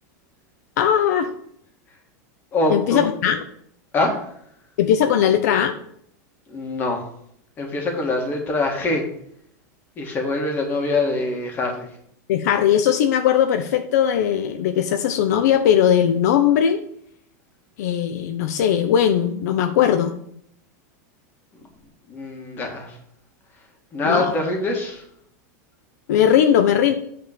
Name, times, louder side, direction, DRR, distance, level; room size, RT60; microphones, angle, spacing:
voice 1, 0.8-1.3 2.7-3.4 4.8-5.8 12.3-16.8 17.8-20.1 24.0-24.3 26.1-26.9, left 9 dB, 70° left, 7 dB, 0.7 m, -19 dB
voice 2, 2.5-3.1 3.9-4.1 6.5-7.0 7.6-9.0 10.0-11.9 22.1-22.9 23.9-25.0, left 2 dB, 20° left, 2 dB, 1.7 m, -24 dB
8.6 x 3.6 x 6.7 m, 0.67 s
supercardioid pair, 160°, 9 cm